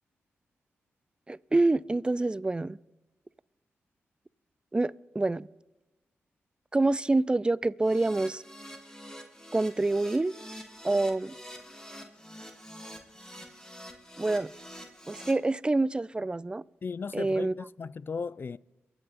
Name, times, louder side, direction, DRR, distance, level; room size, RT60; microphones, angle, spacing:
voice 1, 1.3-2.8 4.7-5.5 6.7-8.4 9.5-10.3 10.8-11.4 14.2-14.5 15.1-16.6 17.1-17.5, right 2 dB, 20° right, 0.4 m, -27 dB
Keyboard (musical), 7.8-15.3, equal, 10° left, 2.3 m, -46 dB
voice 2, 16.8-18.6, left 5 dB, 45° left, 0.4 m, -36 dB
23.0 x 7.9 x 4.1 m
cardioid pair, 50°, 5 cm